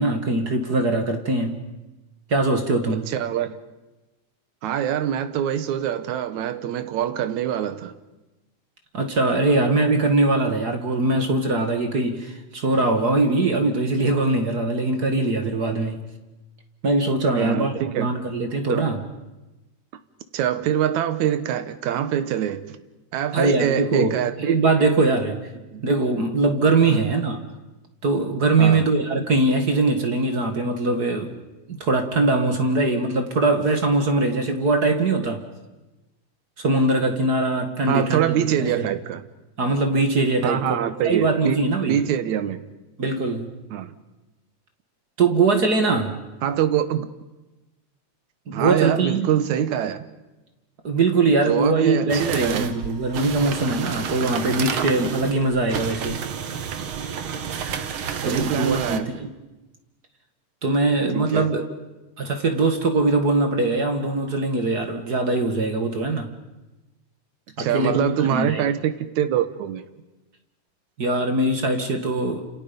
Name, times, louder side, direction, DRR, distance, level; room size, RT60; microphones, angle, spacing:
voice 1, 0.0-1.6 2.3-3.1 8.9-16.0 16.8-19.0 23.3-25.4 25.8-27.4 28.0-31.4 31.7-35.4 36.6-38.9 39.6-40.6 41.0-42.0 43.0-43.5 45.2-46.2 48.5-49.3 50.8-56.2 58.2-59.3 60.6-61.6 62.2-66.3 67.6-68.7 71.0-72.5, right 2 dB, 35° right, 1.9 m, -22 dB
voice 2, 2.9-3.6 4.6-7.9 17.4-18.1 18.7-18.8 20.3-22.8 23.1-24.6 25.7-25.8 26.9-27.1 28.6-28.9 37.9-39.2 40.4-41.6 41.9-42.7 43.7-43.9 46.4-47.1 48.5-50.0 51.5-52.7 58.2-59.3 61.1-61.5 67.6-69.8, right 10 dB, 75° right, 2.5 m, -24 dB
sound 1, 52.1-59.0, right 7 dB, 55° right, 1.7 m, -30 dB
29.5 x 28.0 x 5.3 m
omnidirectional pair, 3.5 m